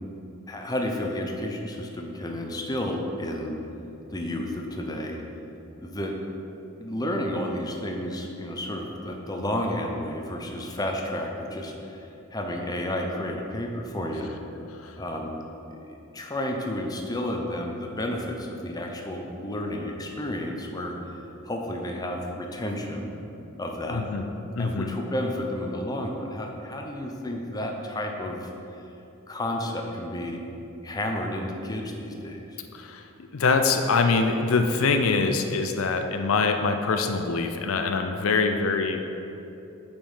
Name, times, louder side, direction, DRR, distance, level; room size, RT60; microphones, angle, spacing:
voice 1, 0.5-3.6 4.1-5.2 5.8-6.1 6.8-14.3 15.0-15.4 15.7-21.2 21.4-23.1 23.6-24.0 24.6-28.5 29.3-30.4 30.8-32.6, left 1 dB, 20° left, 1 dB, 0.7 m, -31 dB
voice 2, 23.9-24.3 24.6-24.9 32.7-39.0, left 4 dB, 75° left, 6 dB, 0.5 m, -24 dB
7.2 x 5.3 x 5.6 m, 2.9 s
head